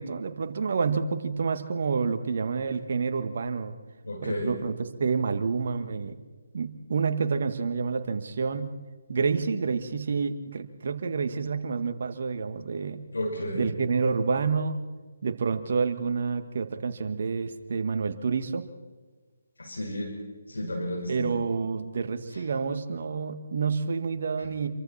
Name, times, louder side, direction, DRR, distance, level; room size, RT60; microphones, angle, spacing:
voice 1, 0.0-3.7 4.2-6.2 6.5-8.7 9.1-13.0 13.5-14.8 15.2-18.7 21.1-24.7, right 5 dB, 55° right, 7 dB, 1.8 m, -28 dB
voice 2, 4.0-4.5 13.1-13.7 19.6-20.1 20.5-21.3, left 1 dB, 80° left, 2 dB, 5.1 m, -32 dB
28.0 x 23.5 x 4.4 m, 1.4 s
figure-of-eight pair, 150°, 0 cm